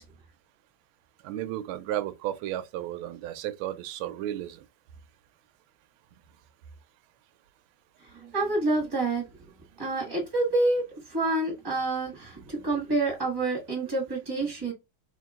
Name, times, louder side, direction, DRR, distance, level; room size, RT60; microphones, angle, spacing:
voice 1, 1.2-4.6, right 12 dB, 85° right, 1.4 m, -33 dB
voice 2, 8.1-9.2 9.8-14.7, right 2 dB, 15° right, 1.2 m, -28 dB
3.4 x 2.9 x 3.5 m
omnidirectional pair, 2.3 m